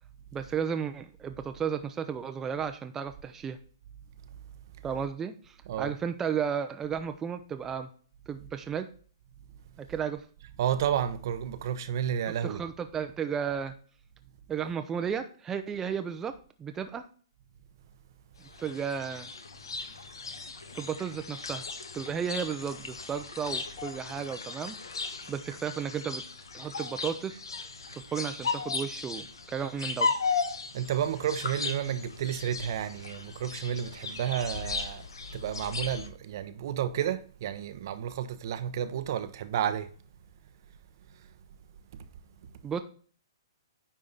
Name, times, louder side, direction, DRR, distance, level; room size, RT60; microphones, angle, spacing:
voice 1, 0.3-3.6 4.8-7.9 8.3-8.9 9.8-10.2 12.4-13.7 14.5-16.3 16.6-17.0 18.6-19.3 20.7-21.7 21.9-24.8 25.3-26.2 26.5-27.4 27.9-30.1 42.6-42.8, right 7 dB, 15° right, 0.6 m, -33 dB
voice 2, 10.6-12.6 30.7-35.1 35.3-39.9 41.2-41.3 41.9-42.0, right 9 dB, 55° right, 0.8 m, -31 dB
sound 1, 18.5-36.1, left 4 dB, 85° left, 1.2 m, -36 dB
9.8 x 3.8 x 3.9 m
hypercardioid pair, 135°, 2 cm